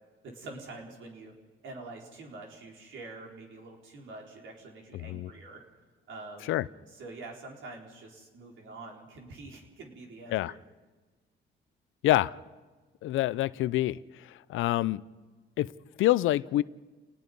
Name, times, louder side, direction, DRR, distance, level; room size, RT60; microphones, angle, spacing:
voice 1, 0.2-1.3 1.6-5.6 6.1-10.6, right 3 dB, 75° right, 0 dB, 4.8 m, -46 dB
voice 2, 4.9-5.3 6.5-6.6 10.3-10.5 12.0-12.3 13.0-15.0 15.6-15.7 16.0-16.6, left 15 dB, 85° left, 19 dB, 0.6 m, -27 dB
29.0 x 19.5 x 5.4 m, 1.3 s
cardioid pair, 90°, 20 cm